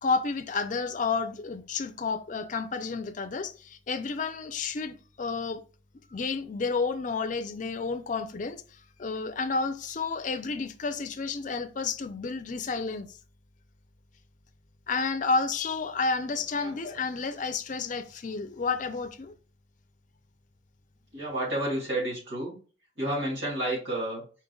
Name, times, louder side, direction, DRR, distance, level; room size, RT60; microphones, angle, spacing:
voice 1, 0.0-5.6 6.1-8.6 9.0-13.2 14.9-19.3, left 4 dB, 40° left, 0.4 m, -31 dB
voice 2, 21.1-22.6 23.0-24.2, right 1 dB, 80° right, 2.5 m, -30 dB
5.0 x 4.4 x 2.3 m
head